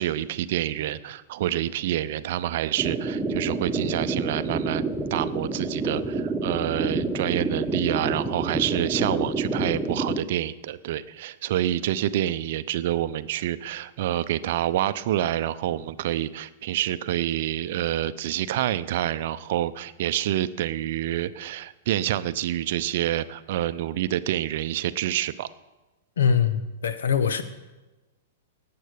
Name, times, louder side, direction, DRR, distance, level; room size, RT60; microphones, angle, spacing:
voice 1, 0.0-4.8 5.1-25.5, right 13 dB, 55° right, 14 dB, 0.6 m, -27 dB
sound 1, 2.8-10.2, right 3 dB, 5° right, 1.4 m, -28 dB
voice 2, 26.2-27.4, left 7 dB, 70° left, 12 dB, 1.1 m, -23 dB
18.5 x 8.7 x 5.0 m, 1.1 s
figure-of-eight pair, 100°, 0 cm